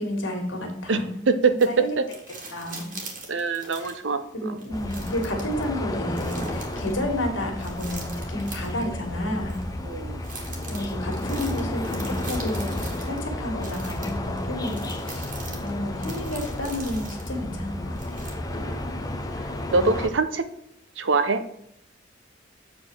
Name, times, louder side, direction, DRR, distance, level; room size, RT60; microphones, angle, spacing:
voice 1, 0.0-1.2 1.7-2.0 2.5-2.9 3.7-3.9 4.3-9.6 10.7-15.3 15.6-18.3 19.7-19.9, left 1 dB, 80° left, 2 dB, 2.0 m, -31 dB
voice 2, 0.9-2.0 3.3-4.6 9.8-10.2 15.5-15.6 18.5-18.8 19.7-20.4 21.0-21.5, right 4 dB, 70° right, 10 dB, 0.7 m, -24 dB
sound 1, 1.6-4.1 4.6-5.6 6.1-7.0 7.6-8.9 9.5-9.6 10.2-13.2 13.6-17.3 18.0-18.7 19.2-19.3, right 3 dB, 45° right, 1.9 m, -41 dB
sound 2, 4.7-20.1, left 1 dB, 20° left, 0.7 m, -32 dB
7.6 x 4.0 x 6.1 m, 0.77 s
head